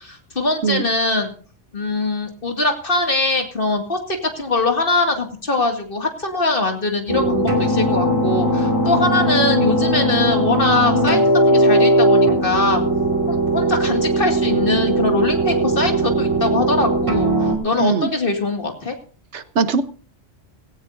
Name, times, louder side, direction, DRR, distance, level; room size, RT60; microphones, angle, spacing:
voice 1, 0.0-1.3 1.7-11.2 11.5-12.8 13.3-18.9, left 2 dB, 50° left, 3 dB, 2.4 m, -22 dB
sound 1, 7.1-17.5, right 1 dB, 25° right, 2.6 m, -18 dB
voice 2, 17.8-18.1 19.3-19.8, right 5 dB, 75° right, 11 dB, 1.3 m, -20 dB
18.0 x 17.0 x 2.6 m, 0.42 s
omnidirectional pair, 1.2 m